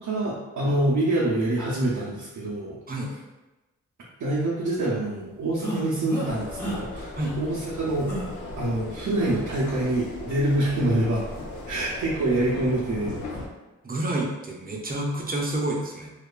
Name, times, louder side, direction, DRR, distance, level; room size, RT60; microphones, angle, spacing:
voice 1, 0.0-2.8 4.2-8.1 8.6-11.2 11.7-13.1, right 1 dB, 75° right, -7 dB, 0.6 m, -26 dB
sound 1, 5.6-6.3 6.6-6.8 7.2-7.3 8.1-8.3 9.2-9.4, equal, 5° left, 0.8 m, -32 dB
sound 2, 6.2-13.5, left 2 dB, 70° left, 0.5 m, -37 dB
voice 2, 13.8-16.1, right 1 dB, 30° right, -1 dB, 0.6 m, -29 dB
2.8 x 2.2 x 2.3 m, 1.1 s
cardioid pair, 60°, 31 cm